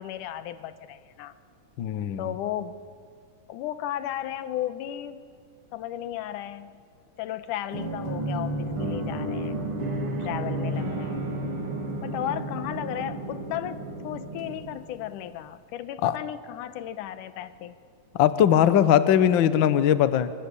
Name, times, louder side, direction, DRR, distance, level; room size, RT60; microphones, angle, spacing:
voice 1, 0.0-1.3 2.2-2.8 3.5-5.2 5.7-6.8 7.2-9.6 10.2-11.3 12.0-17.8, left 12 dB, 85° left, 13 dB, 2.5 m, -34 dB
voice 2, 1.8-2.3 16.0-16.1 18.1-20.3, left 10 dB, 65° left, 13 dB, 1.2 m, -20 dB
sound 1, 7.7-15.3, right 1 dB, 45° right, 3.8 m, -32 dB
26.0 x 24.0 x 8.5 m, 2.1 s
omnidirectional pair, 3.6 m